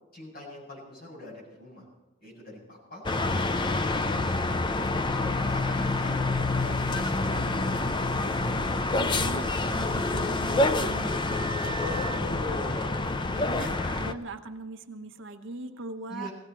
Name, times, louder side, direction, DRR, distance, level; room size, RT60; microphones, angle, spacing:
voice 1, 0.1-1.8 2.2-3.0 3.4-4.1 4.9-7.8 11.7-13.0 13.4-14.2 16.1-16.3, left 2 dB, 45° left, -3 dB, 7.6 m, -41 dB
sound 1, 3.0-14.1, left 2 dB, 20° left, 0.5 m, -27 dB
Wind instrument woodwind instrument, 8.7-12.2, right 3 dB, 25° right, 0.8 m, -43 dB
voice 2, 9.0-11.8 12.1-13.7 14.0-16.3, right 2 dB, 60° right, 5 dB, 1.1 m, -41 dB
19.5 x 16.0 x 4.6 m, 1.1 s
head